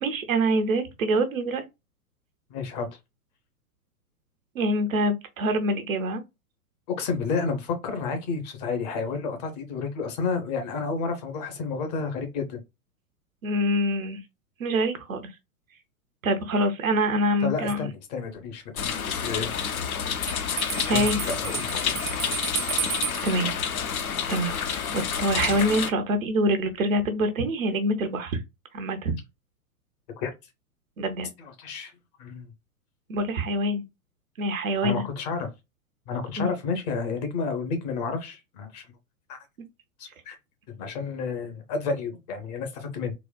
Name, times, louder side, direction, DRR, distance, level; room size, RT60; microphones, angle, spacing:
voice 1, 0.0-1.6 4.5-6.2 13.4-14.2 14.6-15.3 16.2-17.9 20.8-21.2 22.9-23.5 24.3-28.4 28.7-29.1 31.0-31.3 33.1-33.8 34.4-35.0 36.4-36.5, right 1 dB, 65° right, 0.8 m, -25 dB
voice 2, 2.5-2.9 6.9-12.6 17.4-19.5 20.8-21.6 30.2-30.3 31.4-31.9 32.2-32.5 34.8-35.5 36.1-38.8 39.3-39.4 40.0-40.4 40.7-43.1, left 4 dB, 30° left, 0.6 m, -31 dB
sound 1, 18.8-25.9, left 7 dB, 70° left, 0.7 m, -29 dB
Bell, 20.3-23.4, right 7 dB, 25° right, 0.5 m, -32 dB
3.9 x 2.1 x 2.2 m
figure-of-eight pair, 105°, 44 cm